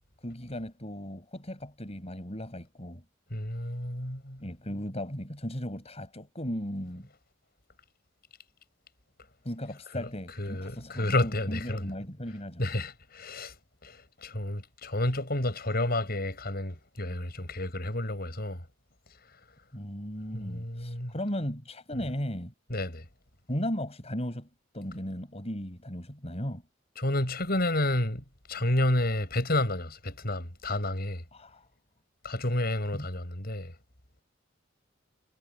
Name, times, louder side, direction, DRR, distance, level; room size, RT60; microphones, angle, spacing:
voice 1, 0.2-3.0 4.4-7.1 9.4-12.6 19.7-22.5 23.5-24.5 24.7-26.6 31.3-31.7 32.9-33.1, equal, 35° left, 7.4 m, -36 dB
voice 2, 3.3-4.4 9.9-10.1 10.4-11.9 12.6-13.5 13.8-18.6 20.3-21.1 22.7-23.0 27.0-31.2 32.2-33.7, left 1 dB, 55° left, 7.7 m, -30 dB
head